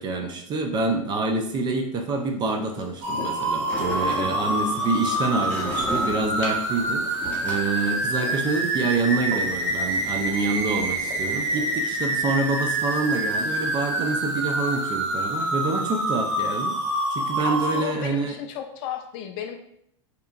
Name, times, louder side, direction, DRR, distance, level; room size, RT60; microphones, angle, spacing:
voice 1, 0.0-16.8 17.1-18.4, right 3 dB, 25° right, 4 dB, 0.4 m, -27 dB
sound 1, 2.1-14.0, left 3 dB, 75° left, 0.8 m, -44 dB
sound 2, 3.0-17.8, right 1 dB, 65° right, 0.7 m, -26 dB
Sliding door, 3.4-11.0, left 2 dB, 10° left, 0.6 m, -38 dB
voice 2, 4.0-4.5 17.4-19.6, left 9 dB, 50° left, 6 dB, 0.4 m, -34 dB
2.8 x 2.3 x 2.3 m, 0.73 s
hypercardioid pair, 105°, 16 cm